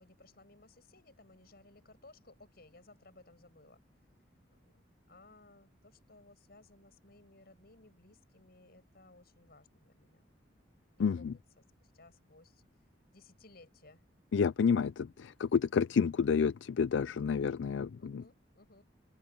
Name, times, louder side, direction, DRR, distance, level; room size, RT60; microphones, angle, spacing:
voice 1, 0.0-3.8 4.5-4.8 5.1-10.2 11.0-11.6 11.9-12.6 13.1-14.0 18.0-18.8, left 2 dB, 55° left, 7.4 m, -60 dB
voice 2, 11.0-11.3 14.3-18.2, left 6 dB, 75° left, 0.4 m, -29 dB
open air
head